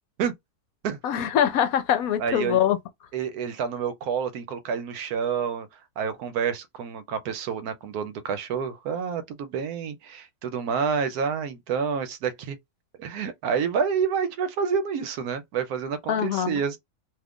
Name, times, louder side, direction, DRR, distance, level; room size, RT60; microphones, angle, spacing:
voice 1, 1.0-2.8 16.1-16.6, left 9 dB, 70° left, 1.0 m, -23 dB
voice 2, 2.2-2.6 3.1-5.7 6.0-12.6 13.0-16.8, right 6 dB, 80° right, 1.1 m, -28 dB
2.8 x 2.4 x 3.5 m
omnidirectional pair, 1.6 m